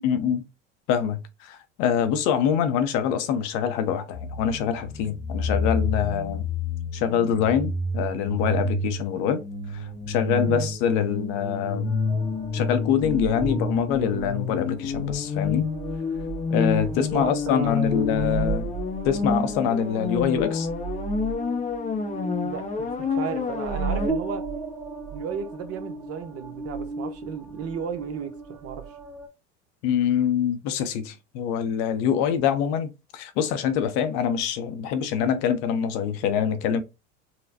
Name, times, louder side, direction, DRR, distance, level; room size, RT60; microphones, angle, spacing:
voice 1, 0.0-0.4 0.9-6.5 6.9-9.4 9.7-12.0 12.5-15.7 16.5-18.7 19.0-20.7 29.8-36.8, left 8 dB, 60° left, 0.6 m, -25 dB
sound 1, 4.1-24.1, left 4 dB, 20° left, 0.6 m, -29 dB
sound 2, 11.8-29.3, right 5 dB, ahead, 1.1 m, -36 dB
voice 2, 17.1-18.0 22.4-24.4 25.1-28.9, right 7 dB, 45° right, 0.8 m, -34 dB
4.0 x 2.1 x 2.7 m
supercardioid pair, 100°, 35 cm